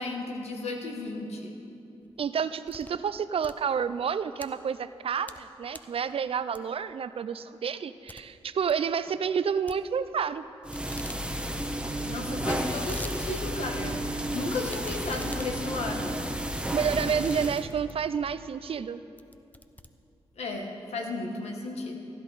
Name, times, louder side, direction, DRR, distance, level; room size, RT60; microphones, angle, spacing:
voice 1, 0.0-1.5 12.0-14.0 14.3-16.2 20.3-22.0, left 2 dB, 85° left, 2 dB, 1.4 m, -34 dB
sound 1, 2.1-3.0 3.3-4.5 5.0-5.4 5.7-6.0 6.5-6.9 7.3-7.4 7.7-7.8 8.1-8.2 8.5-8.8 9.7-10.4 10.7-11.2 11.6-11.7 11.8-11.9 12.5-13.2 13.6-13.7 14.7-18.2 18.7-18.9 19.2-20.4, left 1 dB, 15° left, 0.6 m, -46 dB
voice 2, 2.2-10.4 16.7-19.0, right 7 dB, 65° right, 13 dB, 0.4 m, -29 dB
sound 2, 10.6-17.7, right 1 dB, 10° right, 1.0 m, -32 dB
15.0 x 11.0 x 4.1 m, 2.6 s
cardioid pair, 50°, 11 cm